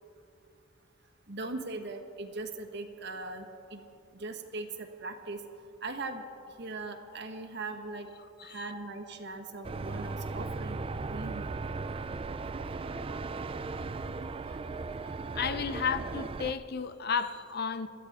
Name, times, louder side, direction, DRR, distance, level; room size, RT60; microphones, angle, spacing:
voice 1, 1.3-3.8 4.1-5.4 5.8-6.2 6.6-8.1 8.4-11.6, right 3 dB, 60° right, 5 dB, 1.4 m, -40 dB
voice 2, 8.4-8.7 12.6-12.8 14.5-14.6 15.1-17.9, left 6 dB, 55° left, 12 dB, 0.6 m, -33 dB
sound 1, 9.6-16.5, right 3 dB, 30° right, 0.3 m, -37 dB
26.5 x 14.0 x 3.6 m, 2.7 s
head